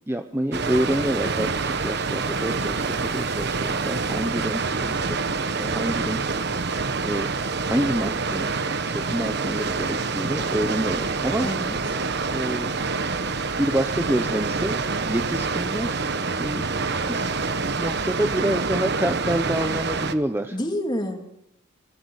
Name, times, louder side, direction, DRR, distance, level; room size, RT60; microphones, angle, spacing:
voice 1, 0.1-6.2 7.0-7.3 7.6-8.5 8.8-11.5 12.3-12.7 13.6-14.8 15.0-16.0 16.4-16.6 17.1-17.2 17.8-20.6, right 1 dB, 10° right, 6 dB, 0.9 m, -27 dB
Water, 0.5-20.1, right 4 dB, 50° right, 1.2 m, -26 dB
voice 2, 11.4-12.0 20.5-21.3, equal, 20° left, 3 dB, 3.0 m, -29 dB
27.0 x 21.5 x 6.6 m, 0.79 s
head